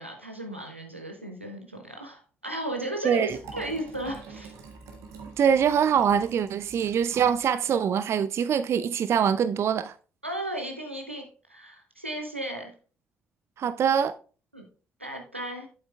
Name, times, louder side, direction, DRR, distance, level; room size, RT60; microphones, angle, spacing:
voice 1, 0.0-4.5 10.2-12.7 14.5-14.6 15.0-15.7, right 1 dB, 90° right, 0.8 m, -35 dB
Liquid, 3.2-7.5 7.8-7.9, right 4 dB, 60° right, 1.3 m, -45 dB
voice 2, 5.4-9.9 13.6-14.2, right 8 dB, 45° right, 0.4 m, -24 dB
8.6 x 7.8 x 2.3 m
figure-of-eight pair, 40°, 6 cm